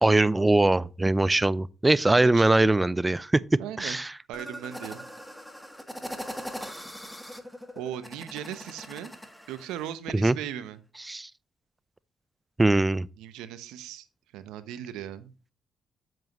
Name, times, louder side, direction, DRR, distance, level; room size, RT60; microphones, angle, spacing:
voice 1, 0.0-3.4 3.8-4.1 10.1-10.4 11.1-11.3 12.6-13.1, right 2 dB, 20° right, 0.5 m, -22 dB
voice 2, 2.2-2.7 3.6-4.0 4.3-5.1 7.8-9.1 9.5-10.8 13.2-14.1 14.3-15.3, right 10 dB, 90° right, 0.8 m, -38 dB
sound 1, 4.3-9.9, equal, 5° left, 1.5 m, -41 dB
7.6 x 7.4 x 3.1 m
supercardioid pair, 60°, 0 cm